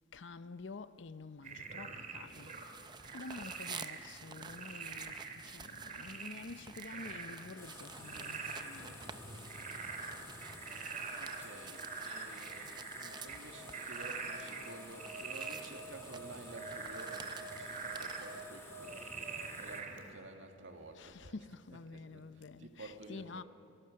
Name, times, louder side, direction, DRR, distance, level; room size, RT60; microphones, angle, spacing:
voice 1, 0.1-2.5 3.1-9.2 21.0-23.4, left 3 dB, 60° left, 0.7 m, -49 dB
Frog, 1.4-20.1, right 4 dB, 40° right, 2.6 m, -45 dB
sound 1, 2.3-18.5, right 6 dB, 20° right, 0.6 m, -52 dB
sound 2, 7.6-19.8, left 2 dB, 15° left, 2.1 m, -53 dB
voice 2, 11.2-19.2 19.6-21.5 21.7-23.4, right 2 dB, 65° right, 2.1 m, -52 dB
26.0 x 20.0 x 6.5 m
head